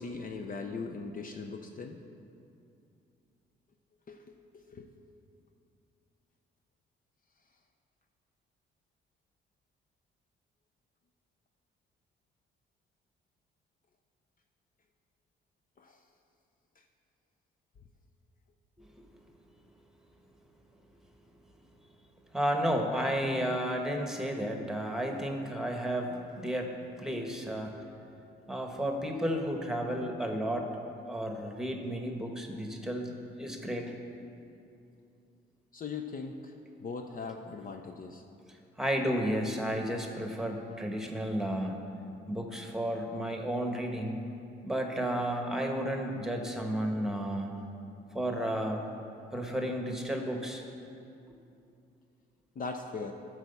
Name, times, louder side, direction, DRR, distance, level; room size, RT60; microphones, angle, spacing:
voice 1, 0.0-2.0 4.1-4.2 4.5-4.9 15.8-16.0 35.7-36.5 36.8-38.2 52.6-53.1, left 4 dB, 45° left, 4 dB, 0.6 m, -39 dB
voice 2, 22.3-26.7 27.0-27.8 28.5-30.7 31.1-33.9 38.8-41.8 42.3-44.2 44.6-47.5 48.1-48.9 49.3-50.6, equal, ahead, 2 dB, 1.2 m, -32 dB
12.0 x 4.8 x 6.8 m, 2.6 s
cardioid pair, 90°, 20 cm